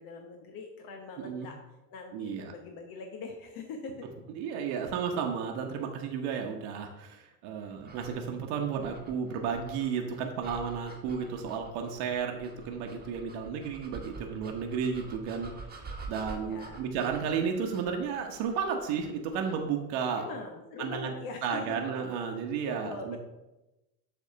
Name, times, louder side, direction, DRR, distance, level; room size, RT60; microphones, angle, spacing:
voice 1, 0.0-1.6 1.9-4.1 16.4-16.9 20.2-21.8 22.6-23.2, left 4 dB, 50° left, 3 dB, 1.1 m, -42 dB
voice 2, 1.2-1.5 2.1-2.5 4.4-20.3 20.8-21.1 21.4-23.2, right 6 dB, 60° right, 2 dB, 1.1 m, -33 dB
sound 1, 7.8-19.7, right 3 dB, 20° right, 1.3 m, -48 dB
7.4 x 3.6 x 5.6 m, 1.0 s
hypercardioid pair, 75°, 45 cm